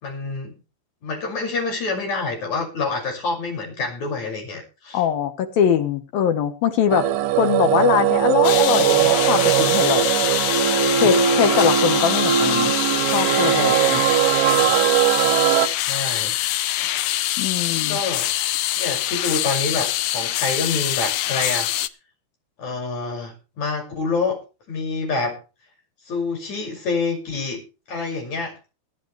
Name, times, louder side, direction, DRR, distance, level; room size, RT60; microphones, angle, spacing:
voice 1, 0.0-0.5 1.0-5.0 14.5-14.7 15.9-16.4 17.9-18.3 18.8-21.7 22.6-24.4 24.7-25.4 26.1-27.6 27.9-28.6, left 3 dB, 40° left, 1 dB, 7.2 m, -27 dB
voice 2, 4.9-7.1 7.4-10.1 11.0-12.7 13.1-14.0 17.4-18.0, left 8 dB, 65° left, 8 dB, 2.7 m, -22 dB
sound 1, 6.9-15.7, right 10 dB, 85° right, 3.4 m, -19 dB
sound 2, 8.4-21.9, left 14 dB, 85° left, 2.1 m, -24 dB
24.0 x 9.4 x 3.3 m, 0.31 s
omnidirectional pair, 5.3 m